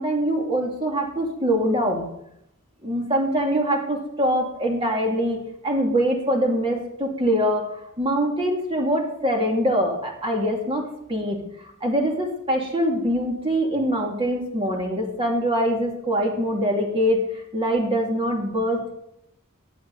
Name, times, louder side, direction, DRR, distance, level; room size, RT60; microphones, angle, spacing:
voice 1, 0.0-2.1 2.8-5.4 5.6-7.7 8.0-11.4 11.8-18.9, equal, 25° right, 0 dB, 2.6 m, -23 dB
13.5 x 9.6 x 4.1 m, 0.77 s
head